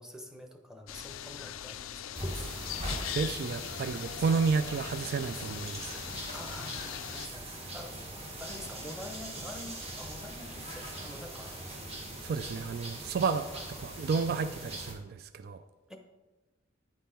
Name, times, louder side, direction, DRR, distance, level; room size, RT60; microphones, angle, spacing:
voice 1, 0.0-2.1 6.3-8.0 8.4-11.6 13.5-13.7 15.9-16.0, left 1 dB, 5° right, 3 dB, 0.8 m, -47 dB
sound 1, 0.9-7.3, left 11 dB, 90° left, 0.4 m, -41 dB
sound 2, 2.1-14.9, right 1 dB, 30° right, 1.5 m, -41 dB
voice 2, 2.9-5.9 12.2-13.5 13.8-15.6, right 5 dB, 50° right, 11 dB, 0.3 m, -31 dB
9.1 x 5.4 x 4.4 m, 1.1 s
head